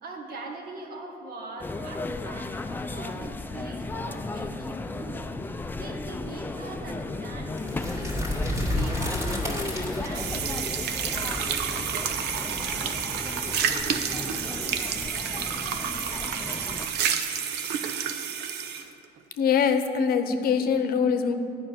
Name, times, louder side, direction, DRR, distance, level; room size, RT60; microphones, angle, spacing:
voice 1, 0.0-2.6 2.9-5.3 5.8-8.1 8.7-10.9, right 3 dB, 65° right, 1 dB, 1.6 m, -41 dB
sound 1, 1.6-16.9, left 2 dB, 10° left, 0.4 m, -35 dB
sound 2, 7.5-13.4, left 1 dB, 15° right, 2.0 m, -32 dB
sound 3, 10.1-18.9, right 8 dB, 80° right, 0.7 m, -29 dB
voice 2, 19.4-21.3, left 6 dB, 65° left, 8 dB, 0.8 m, -23 dB
10.0 x 5.4 x 8.3 m, 2.7 s
cardioid pair, 110°, 17 cm